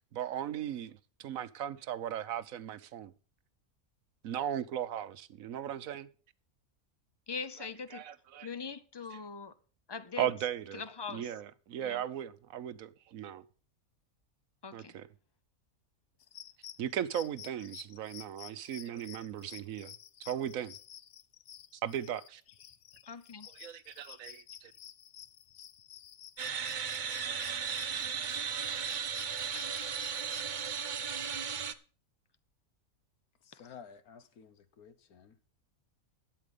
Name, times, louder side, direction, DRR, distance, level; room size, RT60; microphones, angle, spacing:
voice 1, 0.1-3.1 4.2-6.1 7.9-8.5 10.2-10.8 11.1-13.4 14.7-15.1 16.8-19.9 20.2-20.8 21.8-22.4 23.6-24.7, right 10 dB, 75° right, 1.1 m, -37 dB
voice 2, 7.3-8.0 8.4-9.5 9.9-10.3 10.7-11.3 11.8-12.0 14.6-15.0 23.1-23.5 29.5-30.0 33.5-33.6, left 5 dB, 35° left, 0.4 m, -42 dB
sound 1, 16.2-30.5, left 10 dB, 60° left, 0.8 m, -52 dB
sound 2, 26.4-31.7, right 7 dB, 45° right, 0.7 m, -35 dB
voice 3, 33.4-35.4, left 7 dB, 85° left, 1.5 m, -53 dB
12.5 x 8.3 x 5.1 m
omnidirectional pair, 1.5 m